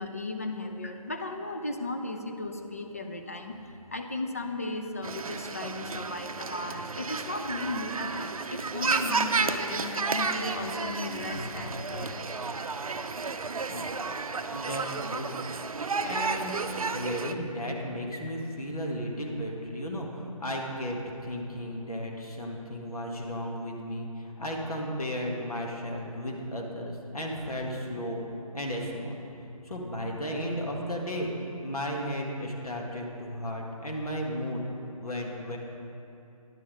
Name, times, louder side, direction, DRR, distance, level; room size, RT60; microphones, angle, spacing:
voice 1, 0.0-12.2, left 2 dB, 25° left, 4 dB, 0.4 m, -36 dB
sound 1, 5.0-17.3, right 4 dB, 70° right, 0.5 m, -32 dB
voice 2, 14.5-15.4 16.0-16.5 16.9-28.2 28.5-29.2 29.6-31.3 31.6-34.6 35.0-35.6, equal, 80° left, -1 dB, 1.8 m, -34 dB
10.5 x 6.1 x 5.1 m, 2.7 s
figure-of-eight pair, 160°, 19 cm